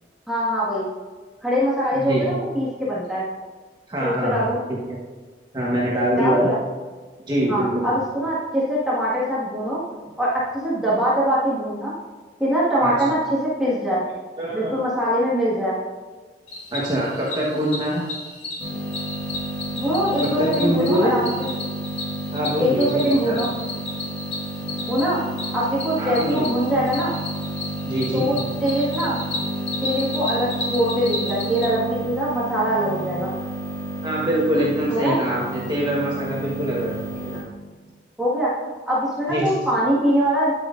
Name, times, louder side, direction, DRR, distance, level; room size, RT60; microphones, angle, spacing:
voice 1, 0.3-0.9 1.4-3.2 4.0-4.6 6.2-6.6 7.5-9.8 10.2-11.9 12.4-14.0 14.5-15.8 19.8-21.5 22.6-23.5 24.8-25.2 25.5-27.1 28.1-29.2 29.8-33.4 34.9-35.2 38.2-38.5 38.9-40.5, equal, 5° right, -9 dB, 1.8 m, -23 dB
voice 2, 1.9-2.3 3.9-4.8 5.5-6.5 7.3-7.9 12.8-12.9 14.4-14.8 16.7-18.0 20.2-21.1 22.3-23.4 26.0-26.5 27.8-28.2 34.0-37.0 37.3-37.4 39.3-39.6, right 1 dB, 25° right, -5 dB, 1.3 m, -24 dB
Cricket, 16.5-31.7, left 2 dB, 40° left, 2.6 m, -33 dB
sound 1, 18.6-37.4, right 2 dB, 20° left, 2.3 m, -31 dB
10.0 x 8.9 x 2.6 m, 1.4 s
head